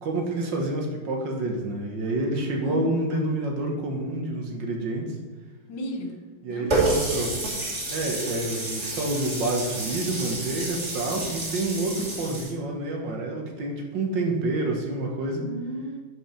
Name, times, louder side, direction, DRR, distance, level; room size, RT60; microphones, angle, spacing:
voice 1, 0.0-5.2 6.4-7.4 7.9-15.5, right 2 dB, 70° right, 1 dB, 2.0 m, -28 dB
voice 2, 2.6-2.9 5.7-6.7 15.4-16.0, equal, 70° left, 4 dB, 1.7 m, -34 dB
Water tap faucet, 6.7-12.5, right 2 dB, 40° right, 2.2 m, -29 dB
10.5 x 5.1 x 5.0 m, 1.3 s
omnidirectional pair, 2.0 m